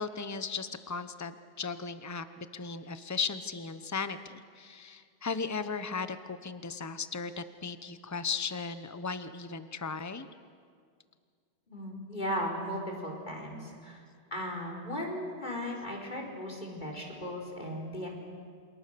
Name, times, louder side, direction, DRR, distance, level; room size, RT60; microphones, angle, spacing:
voice 1, 0.0-10.3, left 5 dB, 15° left, 11 dB, 0.9 m, -36 dB
voice 2, 11.7-14.0 14.3-18.1, equal, 45° left, 0 dB, 5.1 m, -36 dB
28.5 x 27.5 x 6.9 m, 2.1 s
omnidirectional pair, 1.1 m